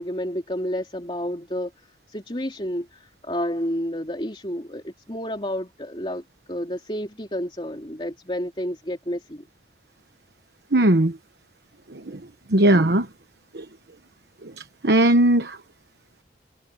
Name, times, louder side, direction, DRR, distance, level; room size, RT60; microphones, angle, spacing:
voice 1, 0.0-6.2 6.5-9.4, equal, 30° left, 3.2 m, -30 dB
voice 2, 10.7-11.2 11.9-12.2 12.5-13.1 13.5-13.6 14.4-15.6, right 1 dB, 70° right, 1.1 m, -19 dB
head